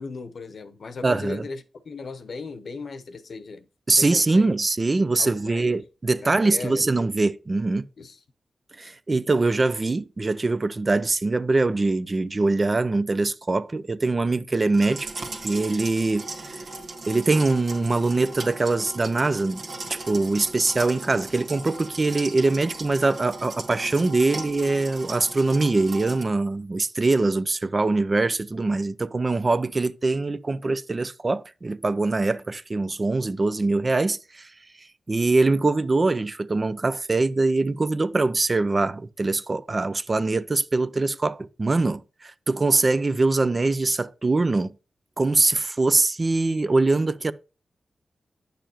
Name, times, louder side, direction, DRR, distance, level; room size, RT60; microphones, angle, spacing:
voice 1, 0.0-4.5 5.2-5.8 6.2-6.8 8.0-8.2, left 4 dB, 75° left, 0.8 m, -37 dB
voice 2, 1.0-1.4 3.9-7.9 8.8-15.1 15.4-16.6 17.1-19.6 19.9-34.5 35.1-44.7 45.2-47.3, right 3 dB, 40° right, 0.5 m, -23 dB
sound 1, 14.7-26.2, right 2 dB, 75° right, 1.6 m, -37 dB
9.1 x 6.8 x 2.9 m
cardioid pair, 65°, 0 cm